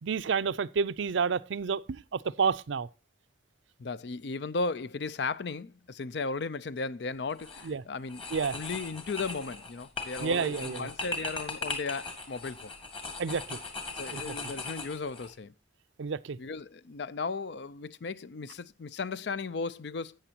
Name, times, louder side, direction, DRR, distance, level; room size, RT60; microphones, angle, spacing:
voice 1, 0.0-2.9 7.6-7.8 8.3-8.6 10.2-10.9 13.2-13.6 14.1-14.3 16.0-16.4, right 5 dB, 75° right, 0.5 m, -30 dB
voice 2, 3.8-12.7 13.9-15.5 16.4-20.2, left 4 dB, 60° left, 0.5 m, -36 dB
sound 1, 7.3-7.7 8.1-15.3, left 3 dB, 30° left, 2.1 m, -39 dB
13.0 x 8.9 x 2.8 m
head